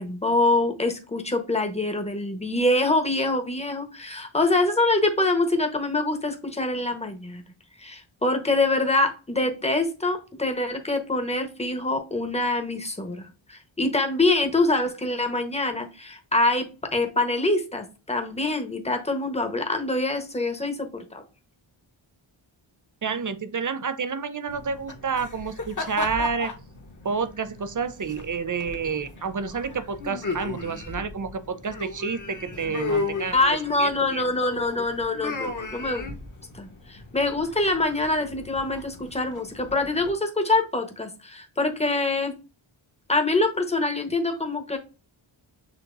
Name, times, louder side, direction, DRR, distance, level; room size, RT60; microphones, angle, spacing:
voice 1, 0.0-7.4 7.8-21.2 33.3-36.2 36.5-42.4 43.1-44.8, left 2 dB, 15° left, 1.1 m, -25 dB
voice 2, 23.0-26.5 27.0-33.4 33.8-34.3, right 5 dB, 40° right, 0.6 m, -29 dB
sound 1, 24.5-40.1, left 3 dB, 35° left, 1.1 m, -36 dB
6.9 x 2.9 x 2.6 m
wide cardioid pair, 65°, 50 cm